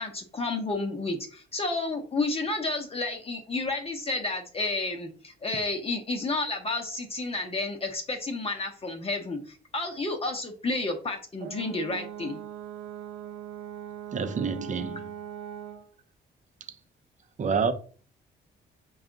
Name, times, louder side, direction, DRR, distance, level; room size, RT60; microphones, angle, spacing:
voice 1, 0.0-12.4, left 2 dB, 30° left, 0.8 m, -31 dB
Brass instrument, 11.4-15.9, right 9 dB, 85° right, 0.5 m, -40 dB
voice 2, 14.1-15.0 17.4-17.7, right 5 dB, 40° right, 0.6 m, -27 dB
4.8 x 2.3 x 3.8 m
cardioid pair, 90°, 20 cm